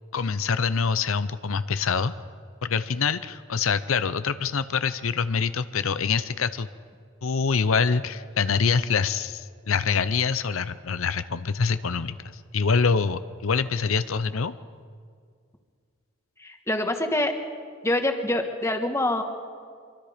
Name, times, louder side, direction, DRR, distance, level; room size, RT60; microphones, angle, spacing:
voice 1, 0.1-2.1 2.6-6.7 7.2-14.5, left 5 dB, 85° left, 13 dB, 0.7 m, -25 dB
voice 2, 16.4-17.4 17.8-19.2, left 1 dB, 15° left, 5 dB, 1.4 m, -25 dB
25.0 x 23.5 x 5.1 m, 2.1 s
head